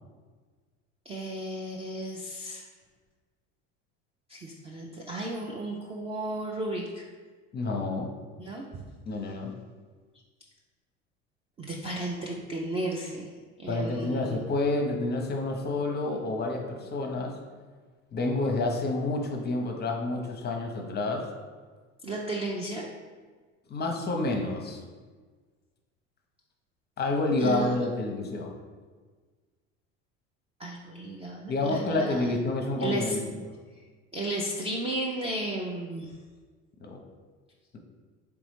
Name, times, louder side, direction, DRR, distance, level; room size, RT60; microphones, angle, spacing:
voice 1, 1.1-2.6 4.3-7.0 8.4-8.7 11.6-13.3 13.6-14.4 22.0-22.9 27.4-27.7 30.6-32.2 32.8-33.2 34.1-36.1, right 1 dB, 15° right, -2 dB, 0.3 m, -33 dB
voice 2, 7.5-8.1 9.1-9.5 13.7-17.3 18.1-21.2 23.7-24.8 27.0-28.5 31.5-33.3 36.8-37.0, left 2 dB, 25° left, 3 dB, 0.6 m, -29 dB
3.9 x 3.4 x 3.1 m, 1.5 s
hypercardioid pair, 75°, 40 cm